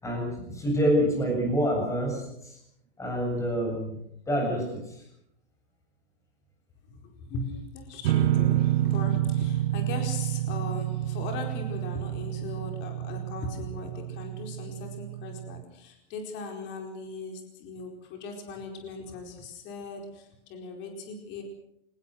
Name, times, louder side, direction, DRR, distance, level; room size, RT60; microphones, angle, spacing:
voice 1, 0.0-2.6 3.0-4.0 4.3-5.0, equal, 10° left, 1 dB, 7.5 m, -27 dB
voice 2, 6.8-21.4, left 3 dB, 30° left, 3 dB, 4.6 m, -38 dB
sound 1, 8.0-15.6, right 15 dB, 60° right, 1.0 m, -29 dB
25.0 x 20.5 x 6.4 m, 0.77 s
supercardioid pair, 155°, 34 cm